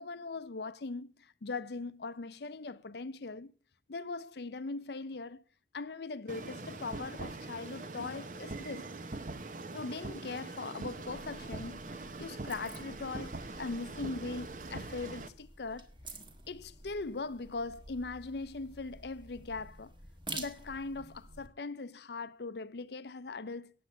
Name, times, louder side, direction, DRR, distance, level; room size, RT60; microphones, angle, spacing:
voice 1, 0.0-3.5 3.9-5.4 5.7-8.9 9.7-15.9 16.5-19.9 20.3-23.7, left 3 dB, 70° left, 0.6 m, -40 dB
sound 1, 6.3-15.3, right 2 dB, 45° right, 0.9 m, -43 dB
sound 2, 11.0-21.5, right 2 dB, 25° right, 1.5 m, -49 dB
9.4 x 8.1 x 8.1 m
head